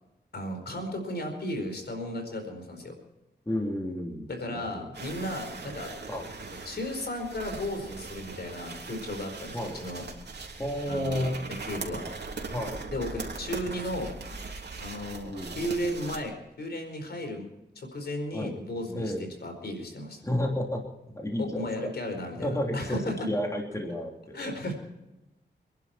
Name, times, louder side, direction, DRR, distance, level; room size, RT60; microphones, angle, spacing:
voice 1, 0.3-2.9 4.3-5.9 6.6-10.0 10.9-12.0 12.9-14.1 14.8-17.5 17.7-19.1 19.4-20.2 21.4-23.3 24.3-24.7, left 1 dB, 65° left, 4 dB, 4.6 m, -35 dB
voice 2, 3.4-4.8 6.1-6.3 9.5-9.8 10.6-11.4 12.5-12.8 15.2-15.6 18.3-18.6 18.9-19.3 20.2-21.9 22.4-24.4, left 1 dB, 15° left, 0 dB, 3.4 m, -31 dB
sound 1, 4.9-16.2, right 4 dB, 70° right, 3.1 m, -40 dB
28.0 x 11.5 x 4.4 m, 0.94 s
wide cardioid pair, 90°, 18 cm